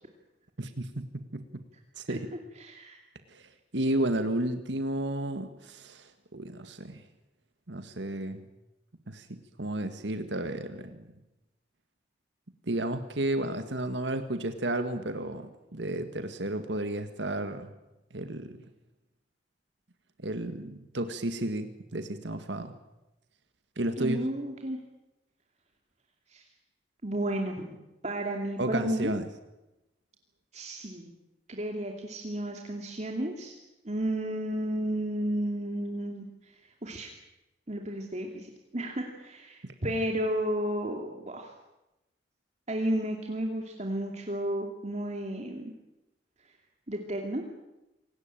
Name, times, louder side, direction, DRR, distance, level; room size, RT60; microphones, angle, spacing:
voice 1, 0.6-1.6 2.0-2.3 3.3-7.0 7.7-8.5 9.1-11.0 12.7-17.7 18.1-18.6 20.2-22.7 23.8-24.3 28.6-29.3 39.6-39.7, right 1 dB, 85° right, 8 dB, 1.8 m, -32 dB
voice 2, 2.6-3.0 24.0-24.8 26.3-26.4 27.0-27.8 28.0-29.1 30.5-31.1 31.5-33.5 33.8-36.5 36.8-37.1 37.7-41.5 42.7-45.7 46.9-47.4, right 1 dB, 40° right, 2 dB, 2.7 m, -32 dB
27.5 x 18.5 x 9.1 m, 0.97 s
head